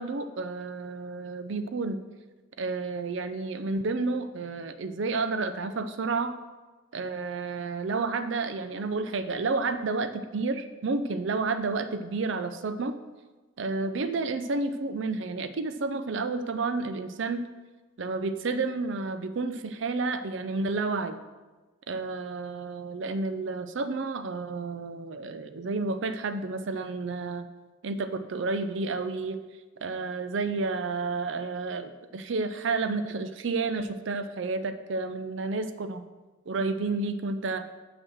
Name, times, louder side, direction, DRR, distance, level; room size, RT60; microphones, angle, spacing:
voice 1, 0.0-2.0 2.6-6.3 6.9-13.0 13.6-17.5 18.0-21.2 21.9-27.5 27.8-29.4 29.8-36.0 36.5-37.7, right 3 dB, 60° right, 10 dB, 0.5 m, -30 dB
6.3 x 6.1 x 6.2 m, 1.2 s
head